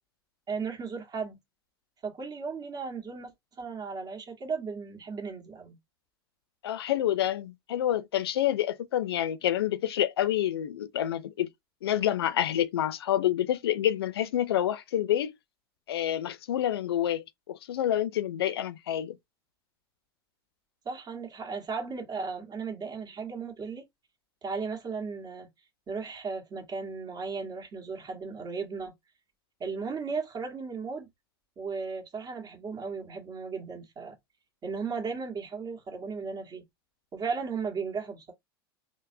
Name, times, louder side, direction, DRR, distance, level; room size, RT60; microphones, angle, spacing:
voice 1, 0.5-1.4 2.0-3.3 3.6-5.8 20.8-23.8 24.4-25.5 25.9-28.9 29.6-31.1 31.6-34.1 34.6-36.7 37.1-38.3, right 5 dB, 30° right, 1.5 m, -35 dB
voice 2, 6.6-11.5 11.8-15.3 15.9-19.2, left 11 dB, 85° left, 0.4 m, -28 dB
3.8 x 2.1 x 2.7 m
hypercardioid pair, 100°, 13 cm